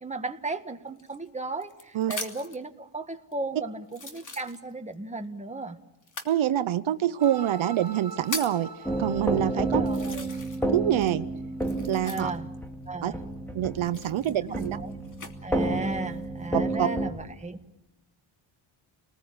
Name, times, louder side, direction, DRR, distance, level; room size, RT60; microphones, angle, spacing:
voice 1, 0.0-5.8 9.5-10.3 12.0-12.5 12.9-13.2 14.2-14.4 14.7-14.9 15.4-17.6, right 2 dB, 15° right, 5 dB, 1.7 m, -35 dB
sound 1, 1.0-2.6 3.3-3.4 3.9-4.9 6.0-6.4 7.2-7.3 7.9-8.7 9.3-9.4 9.9-10.8 11.0-12.6 13.8-15.3 16.0-16.5, left 3 dB, 35° left, 2.9 m, -39 dB
voice 2, 6.2-8.7 9.0-9.8 10.7-11.3 11.8-12.3 13.0-13.1 13.5-14.8 16.5-16.9, right 11 dB, 70° right, 12 dB, 0.9 m, -26 dB
sound 2, 7.2-11.2, right 5 dB, 50° right, 3.8 m, -44 dB
sound 3, 8.8-17.1, right 2 dB, 5° left, 3.1 m, -31 dB
30.0 x 20.0 x 8.9 m, 1.0 s
cardioid pair, 105°, 50 cm